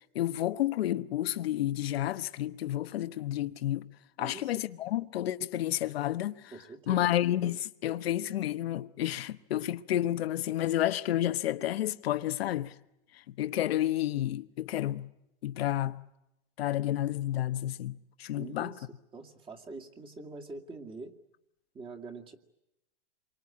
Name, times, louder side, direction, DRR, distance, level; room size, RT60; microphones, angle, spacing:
voice 1, 0.1-3.9 4.2-6.4 6.9-12.7 13.4-15.1 15.4-16.0 16.6-18.7, left 13 dB, 70° left, 1.2 m, -30 dB
voice 2, 4.2-4.6 6.5-7.0 18.4-18.9 19.1-21.1 21.7-22.3, right 3 dB, 15° right, 2.3 m, -44 dB
27.0 x 24.0 x 8.6 m
hypercardioid pair, 140°, 31 cm